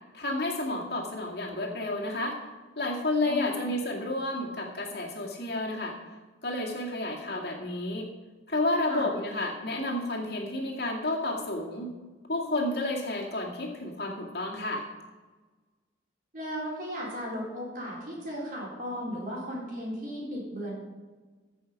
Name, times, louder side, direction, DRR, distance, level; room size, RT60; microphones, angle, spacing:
voice 1, 0.1-2.4 2.8-6.0 6.4-8.1 8.5-11.9 12.3-14.8, left 2 dB, 60° left, -1 dB, 2.2 m, -31 dB
voice 2, 3.2-3.7 8.9-9.1 16.3-20.7, equal, 45° right, -4 dB, 4.1 m, -35 dB
15.5 x 6.3 x 5.3 m, 1.3 s
head